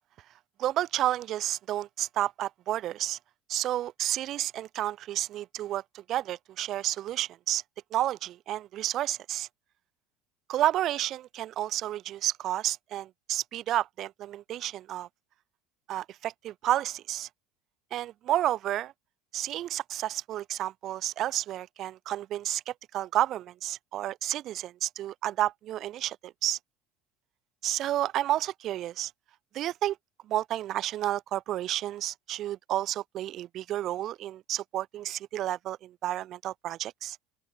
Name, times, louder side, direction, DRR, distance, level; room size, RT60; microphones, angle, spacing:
voice 1, 0.6-3.2 3.5-7.6 7.9-9.5 10.5-15.1 15.9-17.3 17.9-18.9 19.3-26.6 27.6-29.1 29.5-30.0 30.3-37.2, right 13 dB, 50° right, 0.3 m, -31 dB
open air
supercardioid pair, 120°, 0 cm